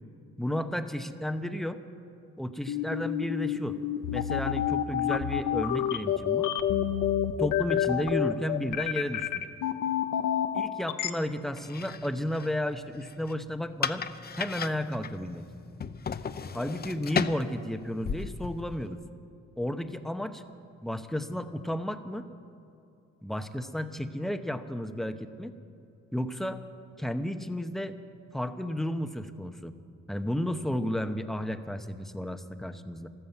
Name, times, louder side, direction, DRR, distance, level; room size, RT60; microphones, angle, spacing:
voice 1, 0.4-1.8 2.4-3.8 4.1-6.5 7.4-9.4 10.5-14.0 14.4-15.4 16.5-19.0 19.6-20.4 20.8-22.3 23.2-25.5 26.1-26.6 27.0-27.9 28.3-29.7 30.1-33.1, equal, ahead, 9 dB, 0.8 m, -33 dB
sound 1, 2.7-11.1, left 10 dB, 85° left, 0.9 m, -28 dB
sound 2, 11.5-19.0, left 6 dB, 30° left, 0.6 m, -36 dB
13.5 x 13.0 x 7.9 m, 2.7 s
cardioid pair, 90°, 30 cm